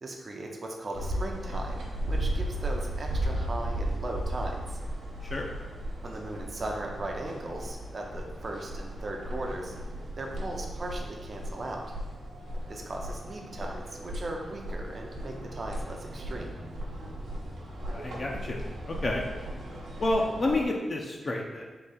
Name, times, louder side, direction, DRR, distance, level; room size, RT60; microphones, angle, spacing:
voice 1, 0.0-4.8 6.0-9.7 10.2-11.9 12.7-16.5, right 1 dB, 40° right, 0 dB, 0.5 m, -38 dB
sound 1, 0.9-20.6, right 1 dB, 90° right, 0.9 m, -36 dB
voice 2, 17.9-19.2 20.0-21.6, left 2 dB, 40° left, -1 dB, 0.4 m, -30 dB
3.7 x 2.8 x 4.1 m, 1.3 s
wide cardioid pair, 105°, 0 cm